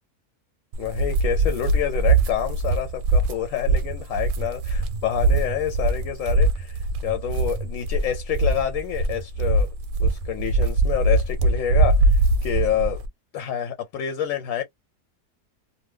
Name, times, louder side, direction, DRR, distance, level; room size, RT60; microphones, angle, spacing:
sound 1, 0.7-13.1, right 2 dB, 75° right, 1.0 m, -22 dB
voice 1, 0.8-9.7 10.0-13.0 13.3-14.6, left 10 dB, 70° left, 0.9 m, -28 dB
2.7 x 2.2 x 3.2 m
omnidirectional pair, 1.6 m